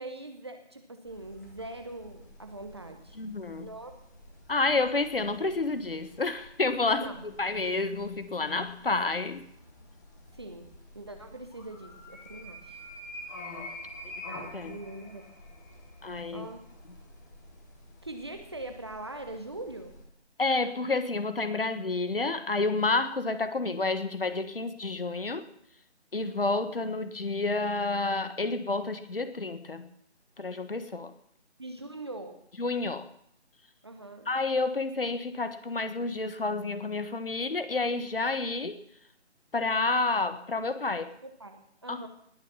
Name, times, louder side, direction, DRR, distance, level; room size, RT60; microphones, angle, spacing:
voice 1, 0.0-3.2 3.6-3.9 6.9-7.2 10.3-10.7 10.9-12.8 14.7-15.2 16.3-16.6 18.0-19.9 31.6-32.4 33.8-34.3 41.2-42.1, right 2 dB, 25° right, 6 dB, 1.0 m, -42 dB
sound 1, 1.0-20.0, left 1 dB, 15° left, 1.6 m, -48 dB
voice 2, 3.2-3.7 4.5-7.0 7.4-9.4 14.0-14.8 16.0-16.5 20.4-25.5 26.1-29.9 30.4-31.1 32.6-33.1 34.2-38.8 39.5-41.1 41.9-42.1, left 3 dB, 55° left, 11 dB, 1.4 m, -29 dB
19.5 x 6.7 x 7.1 m, 0.69 s
figure-of-eight pair, 160°, 34 cm